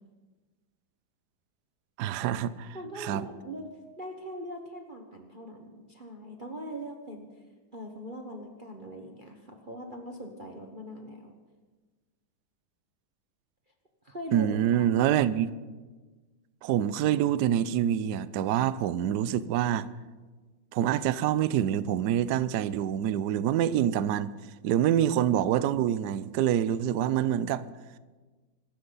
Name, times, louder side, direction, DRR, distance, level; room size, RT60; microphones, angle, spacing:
voice 1, 2.0-3.3 14.3-15.5 16.6-19.9 20.7-24.3 24.6-27.6, right 10 dB, 70° right, 15 dB, 1.0 m, -26 dB
voice 2, 2.7-7.3 7.7-11.4 14.0-14.9, right 1 dB, 30° right, 2 dB, 1.2 m, -41 dB
25.0 x 13.5 x 4.0 m, 1.3 s
omnidirectional pair, 2.2 m